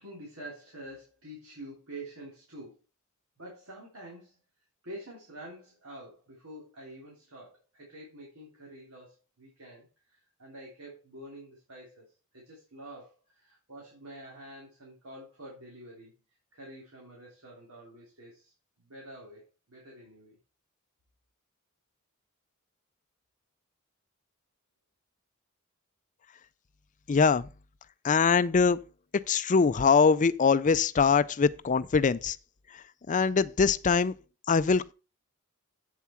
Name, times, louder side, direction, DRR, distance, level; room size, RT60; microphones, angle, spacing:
voice 1, 0.0-2.8 3.4-4.4 4.8-16.1 16.5-18.5 18.8-20.4, right 1 dB, 90° right, 3.3 m, -47 dB
voice 2, 27.1-27.5 28.0-28.8 29.3-32.4 33.1-34.1 34.5-34.9, left 5 dB, 35° left, 0.4 m, -23 dB
8.4 x 7.3 x 4.5 m
head